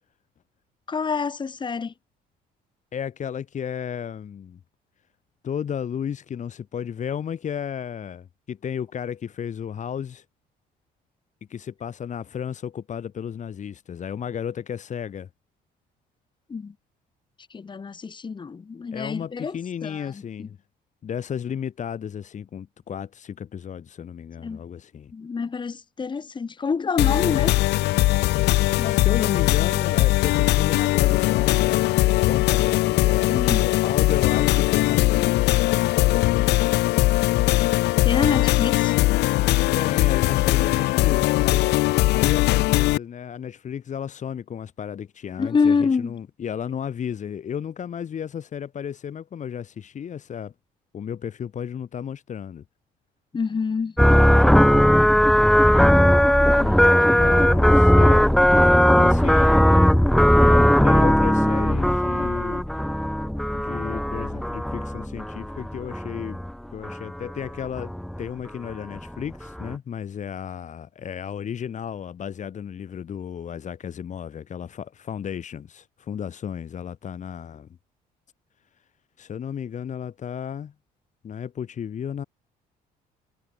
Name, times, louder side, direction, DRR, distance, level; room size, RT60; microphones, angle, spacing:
voice 1, 0.9-1.9 16.5-16.7 17.5-19.5 19.8-20.1 20.4-20.5 24.4-24.6 25.1-27.6 28.8-29.0 33.3-33.7 38.0-39.0 45.4-46.1 53.3-53.9 56.6-57.0, left 5 dB, 30° left, 2.3 m, -26 dB
voice 2, 2.9-4.6 5.4-10.2 11.5-15.3 18.9-20.6 21.0-25.1 28.8-35.4 35.9-36.5 39.7-41.8 42.1-50.5 50.9-52.6 57.1-58.3 58.9-59.6 60.4-62.7 63.5-66.4 66.7-67.9 68.2-77.7 79.2-80.7 81.2-82.2, left 8 dB, 45° left, 6.6 m, -33 dB
sound 1, 27.0-43.0, left 18 dB, 85° left, 1.7 m, -20 dB
sound 2, 54.0-66.5 66.8-67.5 67.8-68.2 68.7-68.8 69.0-69.3 69.6-69.7, equal, ahead, 1.8 m, -18 dB
cardioid pair, 110°, 17 cm